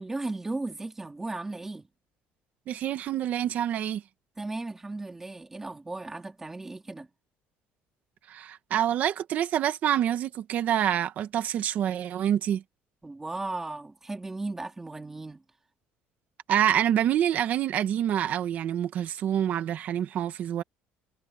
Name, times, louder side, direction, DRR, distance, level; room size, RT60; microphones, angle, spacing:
voice 1, 0.0-1.9 4.4-7.1 13.0-15.4, right 2 dB, 10° right, 2.0 m, -36 dB
voice 2, 2.7-4.0 8.3-12.6 16.5-20.6, right 10 dB, 40° right, 1.2 m, -27 dB
cardioid pair, 175°, 4 cm